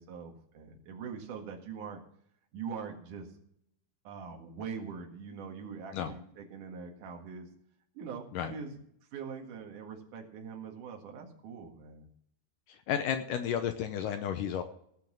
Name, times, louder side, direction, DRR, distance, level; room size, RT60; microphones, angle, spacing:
voice 1, 0.0-2.0 2.5-3.3 4.0-7.5 7.9-8.8 9.1-12.1, right 6 dB, 60° right, 2 dB, 3.2 m, -43 dB
voice 2, 12.9-14.6, left 9 dB, 75° left, 8 dB, 2.2 m, -32 dB
17.5 x 6.6 x 6.2 m, 0.71 s
omnidirectional pair, 4.3 m